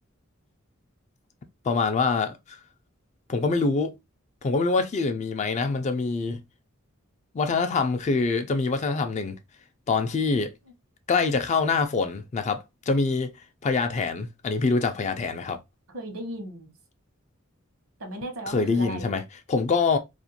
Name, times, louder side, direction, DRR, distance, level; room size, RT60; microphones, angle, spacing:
voice 1, 1.6-2.6 3.3-4.0 4.4-6.4 7.3-9.3 9.9-10.5 11.1-13.3 13.6-15.6 18.5-19.2 19.5-20.0, left 4 dB, 35° left, 0.3 m, -25 dB
voice 2, 15.9-16.7 18.0-19.2, right 1 dB, 75° right, 0.9 m, -36 dB
2.5 x 2.1 x 2.7 m
head